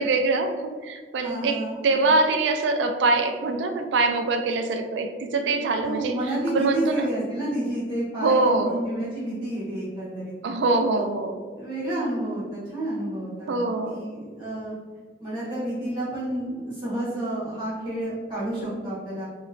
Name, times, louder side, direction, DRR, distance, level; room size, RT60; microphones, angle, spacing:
voice 1, 0.0-6.2 6.5-7.1 8.2-8.8 10.4-11.4 13.5-14.0, right 3 dB, 80° right, 6 dB, 0.3 m, -24 dB
voice 2, 1.2-1.8 5.8-10.3 11.5-14.8 15.2-19.3, right 1 dB, 25° right, -11 dB, 1.4 m, -30 dB
3.0 x 3.0 x 2.6 m, 1.5 s
head